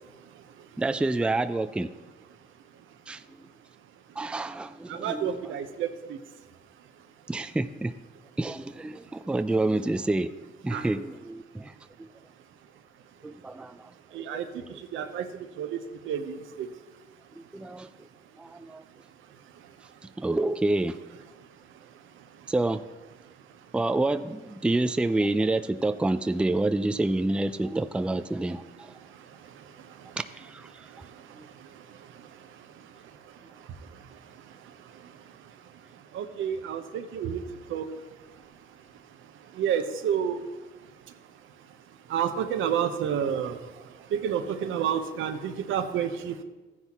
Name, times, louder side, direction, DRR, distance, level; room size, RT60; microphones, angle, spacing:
voice 1, 0.8-1.9 3.1-3.5 4.2-5.6 7.3-7.9 8.4-10.4 10.6-12.1 13.2-13.9 14.2-14.8 17.4-17.9 18.4-18.8 20.2-21.0 22.5-22.8 23.7-28.9 30.4-30.7 31.4-31.5, right 2 dB, 5° right, 10 dB, 0.4 m, -28 dB
voice 2, 4.9-6.2 10.7-10.8 14.1-16.7 29.0-30.2 30.8-33.0 33.6-35.1 36.1-37.4 37.7-37.9 39.5-40.4 42.1-46.4, right 8 dB, 80° right, 8 dB, 0.9 m, -31 dB
14.5 x 9.7 x 3.0 m, 1.2 s
cardioid pair, 90°, 20 cm